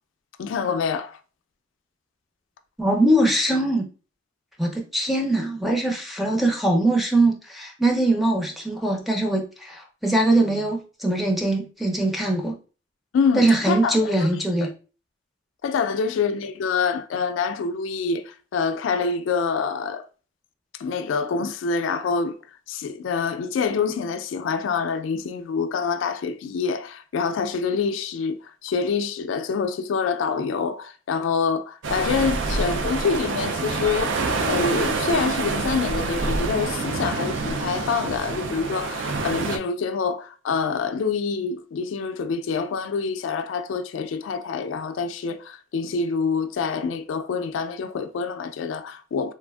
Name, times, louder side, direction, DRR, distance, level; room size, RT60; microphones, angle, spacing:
voice 1, 0.4-1.2 13.1-14.3 14.6-14.7 15.6-20.0 20.8-22.4 22.7-49.3, left 5 dB, 90° left, 0.3 m, -26 dB
voice 2, 2.8-3.9 4.6-12.6 13.4-14.7, right 1 dB, ahead, 0.5 m, -22 dB
sound 1, 31.8-39.6, right 3 dB, 75° right, 0.4 m, -27 dB
Car passing by / Accelerating revving vroom, 31.9-39.4, right 1 dB, 60° right, 1.1 m, -41 dB
3.2 x 2.4 x 2.3 m
head